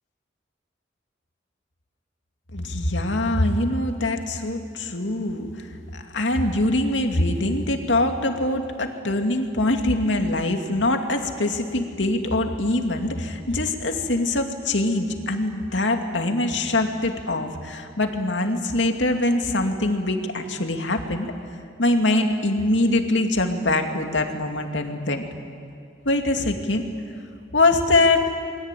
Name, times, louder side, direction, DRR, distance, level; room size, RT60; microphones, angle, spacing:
voice 1, 2.5-5.7 5.9-21.3 21.8-25.2 26.0-26.8 27.5-28.2, left 2 dB, 85° left, 4 dB, 2.5 m, -23 dB
28.5 x 22.5 x 9.2 m, 2.3 s
head